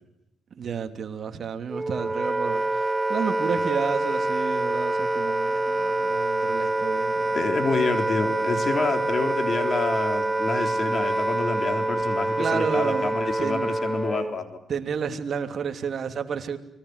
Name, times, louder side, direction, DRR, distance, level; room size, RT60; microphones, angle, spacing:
voice 1, 0.6-7.6 12.4-13.7 14.7-16.6, right 6 dB, 50° right, 2.9 m, -31 dB
Wind instrument woodwind instrument, 1.7-14.4, right 2 dB, 10° right, 1.2 m, -26 dB
voice 2, 7.3-14.6, left 4 dB, 45° left, 3.9 m, -28 dB
30.0 x 22.5 x 8.1 m
cardioid pair, 90°, 0 cm